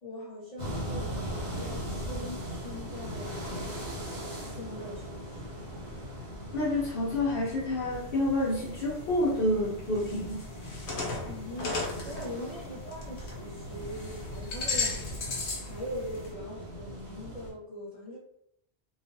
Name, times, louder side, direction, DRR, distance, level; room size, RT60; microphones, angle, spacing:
voice 1, 0.0-3.4 4.5-5.7 11.2-18.2, left 1 dB, 35° left, -8 dB, 1.0 m, -42 dB
sound 1, 0.6-17.5, equal, 90° right, 1.2 m, -39 dB
voice 2, 6.5-10.4, left 1 dB, 65° left, -7 dB, 0.8 m, -28 dB
sound 2, 7.9-8.5 9.0-9.1 9.9-13.4 13.7-15.8 16.1-16.3, left 3 dB, 85° left, 1.0 m, -35 dB
2.5 x 2.3 x 2.6 m, 0.73 s
omnidirectional pair, 1.1 m